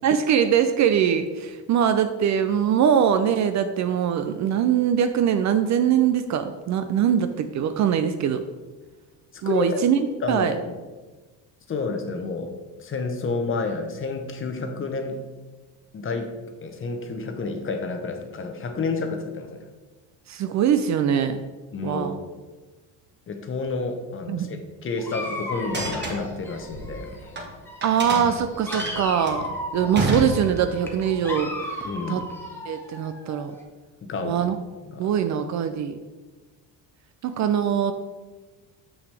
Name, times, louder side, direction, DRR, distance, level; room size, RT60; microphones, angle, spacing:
voice 1, 0.0-8.4 9.4-10.0 10.3-10.6 20.3-21.4 21.8-22.1 24.3-24.5 27.8-31.8 32.1-32.2 32.7-33.5 34.2-34.6 35.0-36.0 37.2-37.9, right 8 dB, 45° right, 9 dB, 0.4 m, -22 dB
voice 2, 9.3-9.8 10.2-10.8 11.7-12.5 12.8-15.2 15.9-16.3 16.6-19.6 21.7-22.1 23.3-27.3 31.8-32.3 34.0-34.5 34.8-35.1, left 3 dB, 30° left, 6 dB, 0.8 m, -30 dB
Dog, 25.0-27.4 27.7-33.6, left 1 dB, 5° left, 1.0 m, -36 dB
sound 1, 25.7-27.5 27.8-30.9, right 2 dB, 25° right, 1.3 m, -30 dB
6.1 x 6.0 x 3.3 m, 1.3 s
cardioid pair, 110°, 41 cm